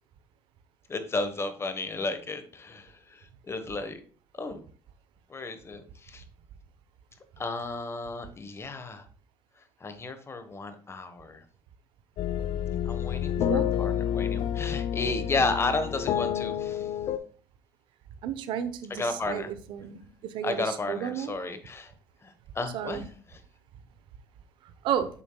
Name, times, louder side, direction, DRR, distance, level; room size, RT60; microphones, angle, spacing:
voice 1, 0.9-4.0 4.4-4.7 5.3-6.2 7.4-9.0 9.8-11.4 12.8-16.9 18.9-19.5 20.4-21.9 22.2-23.4, left 3 dB, 30° left, 9 dB, 1.2 m, -33 dB
sound 1, 12.2-17.2, left 10 dB, 70° left, 0.6 m, -29 dB
voice 2, 13.3-13.7 18.2-21.3 22.7-23.0 24.8-25.1, right 9 dB, 75° right, 11 dB, 0.8 m, -32 dB
7.9 x 7.2 x 2.3 m, 0.43 s
supercardioid pair, 85°, 9 cm